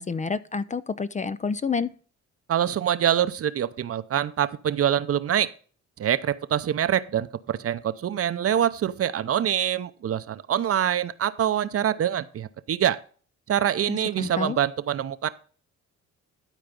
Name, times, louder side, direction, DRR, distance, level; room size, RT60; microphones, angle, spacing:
voice 1, 0.0-1.9 13.9-14.6, left 5 dB, 25° left, 0.5 m, -29 dB
voice 2, 2.5-5.5 6.0-13.0 13.5-15.3, right 10 dB, 50° right, 0.7 m, -25 dB
12.5 x 4.6 x 5.3 m
cardioid pair, 90°, 30 cm